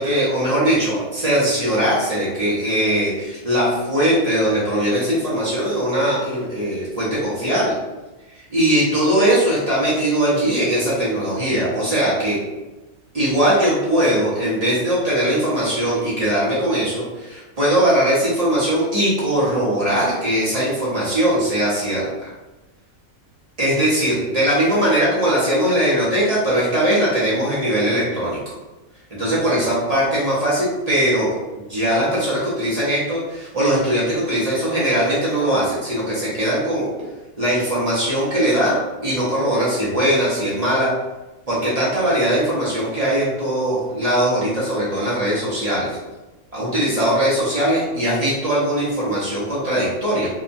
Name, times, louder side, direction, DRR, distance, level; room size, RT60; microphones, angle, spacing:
voice 1, 0.0-7.8 8.5-12.4 13.1-22.1 23.6-28.4 29.1-31.3 31.6-36.9 37.4-40.9 41.5-46.0 46.5-50.3, right 1 dB, 40° right, -8 dB, 0.6 m, -20 dB
2.8 x 2.3 x 2.5 m, 1.1 s
omnidirectional pair, 1.5 m